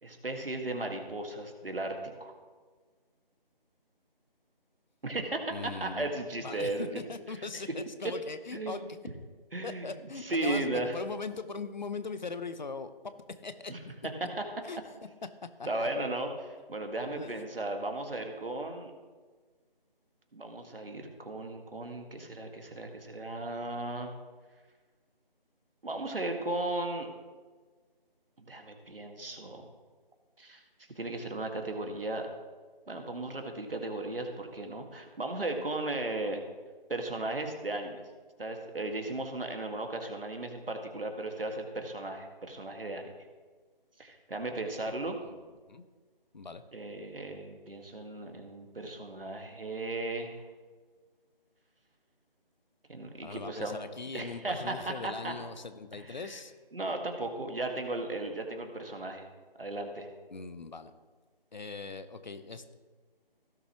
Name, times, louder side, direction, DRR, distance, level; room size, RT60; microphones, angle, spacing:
voice 1, 0.0-1.9 2.2-2.3 5.0-6.9 7.4-7.6 8.5-8.9 9.5-9.9 10.2-11.0 13.7-13.8 15.7-18.9 20.3-24.1 25.8-27.1 28.4-29.7 30.4-30.6 31.0-32.3 32.9-36.4 36.9-38.0 38.4-43.1 44.0-45.2 46.7-50.4 52.9-53.8 54.1-55.3 55.9-56.4 56.7-59.3 59.6-60.1, right 2 dB, 70° right, 4 dB, 1.9 m, -36 dB
voice 2, 5.5-6.1 6.4-9.0 9.6-12.9 13.4-14.0 14.6-14.8 15.6-15.9 17.1-17.4 45.2-45.3 45.7-45.8 46.3-46.6 53.2-56.5 60.3-60.9 61.5-62.7, left 4 dB, 50° left, 11 dB, 0.8 m, -40 dB
16.5 x 6.9 x 3.0 m, 1.4 s
figure-of-eight pair, 160°, 29 cm